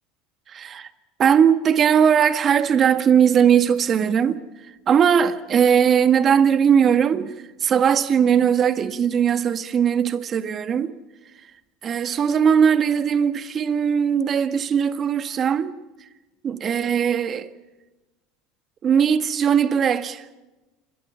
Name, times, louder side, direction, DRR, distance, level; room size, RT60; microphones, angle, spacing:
voice 1, 0.5-0.9 1.2-4.4 4.9-7.3 7.6-10.9 11.8-15.7 16.4-17.5 18.8-20.2, right 8 dB, 40° right, 1.7 m, -19 dB
28.0 x 23.0 x 5.7 m
supercardioid pair, 95°, 0 cm